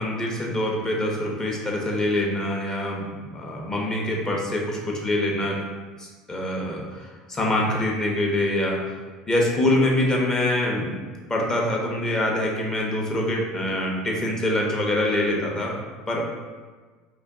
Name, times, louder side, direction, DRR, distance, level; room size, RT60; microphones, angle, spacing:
voice 1, 0.0-5.6 6.0-8.8 9.3-11.0 11.3-15.7 16.1-16.2, left 1 dB, 25° left, -1 dB, 0.7 m, -25 dB
2.4 x 2.3 x 3.5 m, 1.4 s
supercardioid pair, 90°, 3 cm